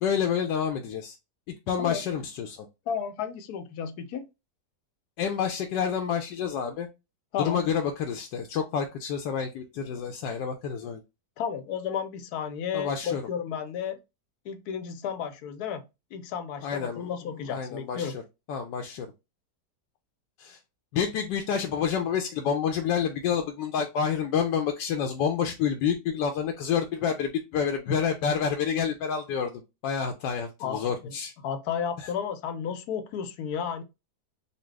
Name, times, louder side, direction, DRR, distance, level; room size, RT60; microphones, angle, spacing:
voice 1, 0.0-1.2 1.7-2.7 5.2-6.9 7.4-11.0 12.7-13.2 16.6-17.1 17.5-18.1 18.5-19.1 20.4-20.6 20.9-31.3 32.0-32.1, left 7 dB, 90° left, 1.2 m, -28 dB
voice 2, 2.9-4.2 7.3-7.6 11.4-14.0 14.4-15.8 16.1-18.1 30.6-31.1 31.4-33.8, left 7 dB, 70° left, 1.0 m, -33 dB
4.2 x 2.3 x 3.2 m
omnidirectional pair, 1.8 m